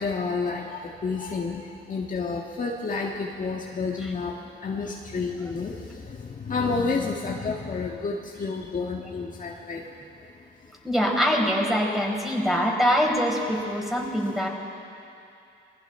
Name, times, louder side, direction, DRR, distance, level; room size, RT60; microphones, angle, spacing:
voice 1, 0.0-1.6 1.9-4.4 4.6-9.8, left 4 dB, 40° left, -1 dB, 1.7 m, -30 dB
voice 2, 10.8-14.5, equal, ahead, -2 dB, 4.9 m, -24 dB
28.5 x 20.5 x 4.5 m, 2.6 s
cardioid pair, 90°, 20 cm